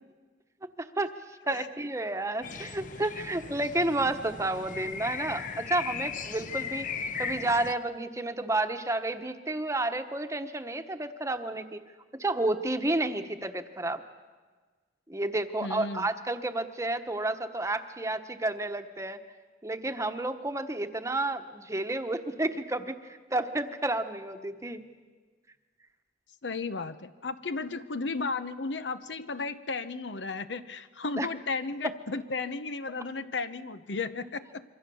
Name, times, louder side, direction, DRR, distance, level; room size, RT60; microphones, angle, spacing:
voice 1, 0.8-1.1 1.5-6.9 7.2-11.8 12.2-14.0 15.1-19.2 19.6-23.0 23.3-24.8 31.2-31.3 31.8-31.9, right 2 dB, 15° right, 7 dB, 1.1 m, -31 dB
sound 1, 2.4-7.7, left 6 dB, 45° left, 0.9 m, -37 dB
voice 2, 15.6-16.1 26.4-34.6, left 4 dB, 85° left, 12 dB, 0.9 m, -34 dB
26.5 x 24.0 x 7.0 m, 1.4 s
head